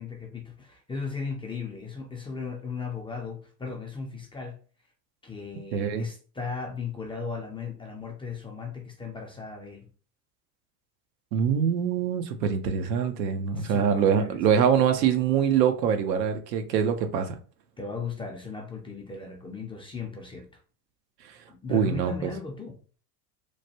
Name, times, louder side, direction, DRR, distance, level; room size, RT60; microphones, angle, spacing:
voice 1, 0.0-4.6 5.2-9.9 13.5-14.6 17.8-20.5 21.5-22.8, left 5 dB, 10° left, 0.4 m, -37 dB
voice 2, 5.7-6.0 11.3-17.4 21.7-22.1, right 7 dB, 80° right, 0.7 m, -24 dB
3.1 x 2.1 x 2.8 m
hypercardioid pair, 85°, 49 cm